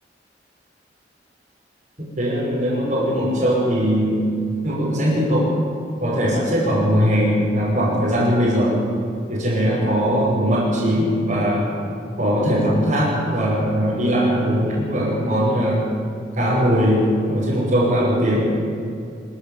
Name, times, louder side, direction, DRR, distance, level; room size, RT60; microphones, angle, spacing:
voice 1, 2.0-4.2 4.6-5.6 6.0-8.8 9.3-11.7 12.2-15.9 16.3-18.5, equal, 45° right, -9 dB, 6.2 m, -20 dB
25.5 x 15.0 x 8.9 m, 2.5 s
head